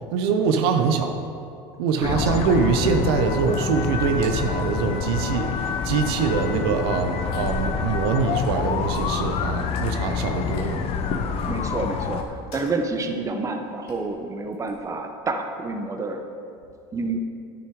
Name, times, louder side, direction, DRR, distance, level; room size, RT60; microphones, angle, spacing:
voice 1, 0.1-1.1 1.8-10.8, right 5 dB, 85° right, 6 dB, 0.8 m, -23 dB
sound 1, 2.0-12.2, left 6 dB, 50° left, 0.8 m, -27 dB
voice 2, 2.0-2.4 11.4-16.2 16.9-17.2, right 3 dB, 25° right, 5 dB, 1.0 m, -29 dB
sound 2, 3.1-3.2 3.5-3.8 4.2-4.3 4.6-6.1 6.5-6.6 7.3-9.3 9.6-9.9 10.4-12.2 12.5-12.7 13.0-13.2 13.4-13.5 13.9-14.1 14.5-14.8, left 1 dB, 90° left, 2.3 m, -37 dB
10.0 x 8.1 x 4.8 m, 2.6 s
supercardioid pair, 110°, 13 cm